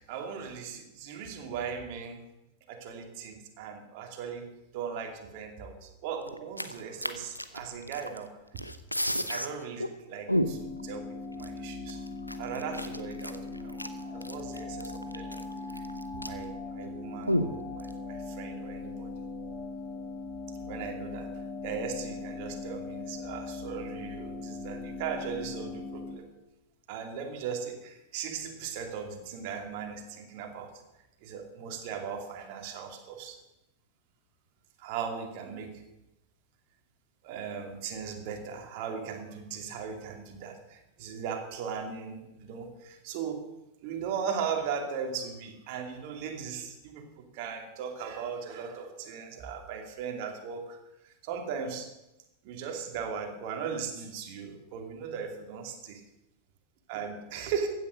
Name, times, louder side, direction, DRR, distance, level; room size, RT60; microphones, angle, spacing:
voice 1, 0.0-2.2 2.7-8.6 9.3-12.0 12.4-13.8 14.1-15.4 16.1-19.1 20.7-21.3 21.6-26.2 26.9-30.7 31.2-33.4 34.8-35.8 37.2-43.5 43.8-50.8 51.0-51.9 52.4-56.0 56.9-57.7, right 6 dB, 45° right, 4 dB, 2.5 m, -38 dB
sound 1, 6.3-8.3 8.6-9.5 9.8-9.9 10.3-10.8 11.4-11.5 11.9-16.5 16.8-16.9 17.3-17.9, equal, 90° left, 0.8 m, -32 dB
sound 2, 10.3-26.1, left 3 dB, 15° left, 4.0 m, -40 dB
15.0 x 9.5 x 6.5 m, 0.92 s
figure-of-eight pair, 90°, 0 cm